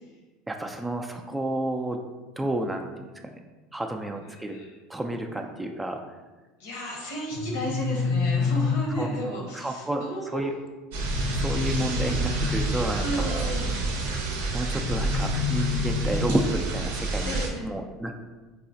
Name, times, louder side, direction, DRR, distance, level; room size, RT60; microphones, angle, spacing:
voice 1, 0.5-2.0 2.4-3.4 3.7-4.6 4.9-6.0 8.9-9.1 9.5-10.1 10.3-10.5 11.3-13.4 14.5-18.3, right 1 dB, 10° right, 3 dB, 0.3 m, -31 dB
voice 2, 4.3-4.7 6.6-10.4 13.0-13.8 17.2-17.7, equal, 80° left, -1 dB, 1.0 m, -33 dB
sound 1, 7.3-9.3 11.0-13.0 14.7-16.7, left 5 dB, 65° left, 0.6 m, -29 dB
sound 2, 10.9-17.5, right 3 dB, 90° right, 0.6 m, -29 dB
4.6 x 2.1 x 2.7 m, 1.2 s
supercardioid pair, 100°, 0 cm